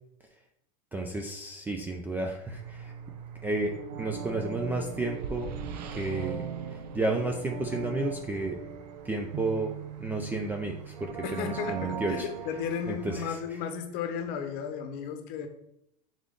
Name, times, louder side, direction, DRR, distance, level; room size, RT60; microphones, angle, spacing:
voice 1, 0.9-2.9 3.4-5.5 5.8-6.4 6.9-8.5 9.0-12.3 12.9-13.4, right 2 dB, 10° right, 2 dB, 0.3 m, -32 dB
sound 1, 2.5-13.3, right 7 dB, 90° right, 0.5 m, -39 dB
voice 2, 11.2-15.5, left 7 dB, 50° left, 7 dB, 0.8 m, -34 dB
3.7 x 3.6 x 3.7 m, 0.77 s
supercardioid pair, 130°, 20 cm